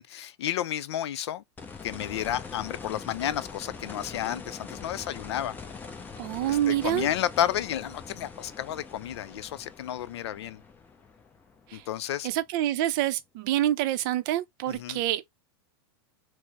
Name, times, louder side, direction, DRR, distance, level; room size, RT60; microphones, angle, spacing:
voice 1, 0.0-1.4 1.8-5.5 6.5-10.6 11.7-12.3 14.7-15.0, left 11 dB, 80° left, 0.5 m, -31 dB
sound 1, 1.6-12.5 14.8-14.9, left 5 dB, 15° left, 0.5 m, -43 dB
voice 2, 6.2-7.1 11.7-11.8 12.2-15.3, right 13 dB, 50° right, 0.5 m, -27 dB
4.4 x 2.0 x 2.9 m
supercardioid pair, 140°, 14 cm